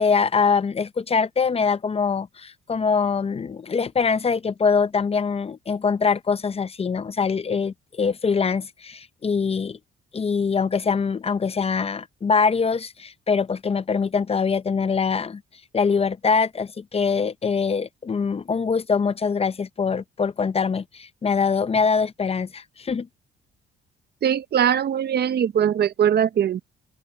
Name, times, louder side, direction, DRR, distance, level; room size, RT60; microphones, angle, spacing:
voice 1, 0.0-9.8 10.1-15.4 15.7-23.1, left 5 dB, 30° left, 0.6 m, -23 dB
voice 2, 24.2-26.7, right 9 dB, 55° right, 0.9 m, -21 dB
open air
cardioid pair, 90°, 20 cm